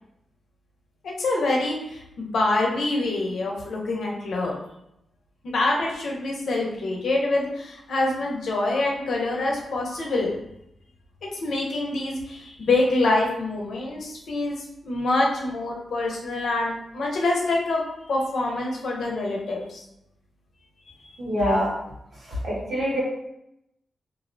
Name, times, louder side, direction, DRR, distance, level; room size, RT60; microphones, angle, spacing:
voice 1, 1.0-4.5 5.5-10.4 11.4-14.6 14.8-17.8 18.1-19.8, left 2 dB, 80° left, -1 dB, 0.6 m, -25 dB
voice 2, 21.2-21.7 22.3-23.0, equal, 65° right, -6 dB, 1.1 m, -25 dB
2.4 x 2.0 x 2.6 m, 0.82 s
cardioid pair, 80°, 0 cm